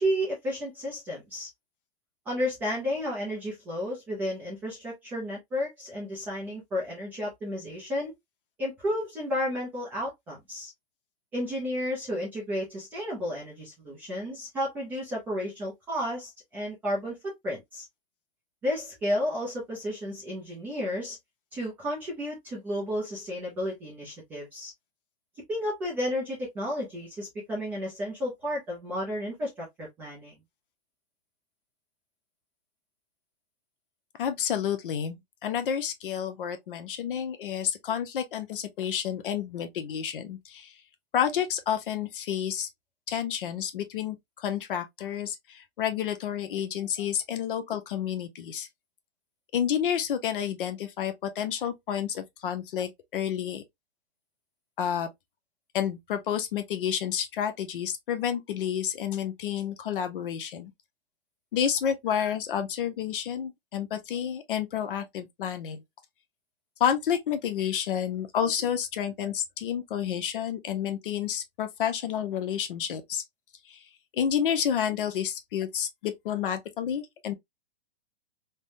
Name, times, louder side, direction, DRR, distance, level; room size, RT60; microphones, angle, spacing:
voice 1, 0.0-1.5 2.3-8.1 8.6-10.7 11.3-17.8 18.6-21.2 21.5-24.7 25.5-30.4, equal, 5° right, 0.4 m, -32 dB
voice 2, 34.2-40.7 41.1-42.7 43.1-48.7 49.5-53.6 54.8-55.1 55.7-60.7 61.5-65.8 66.8-73.2 73.7-73.8 74.1-77.3, left 9 dB, 55° left, 0.8 m, -30 dB
3.3 x 2.1 x 2.6 m
hypercardioid pair, 155°, 31 cm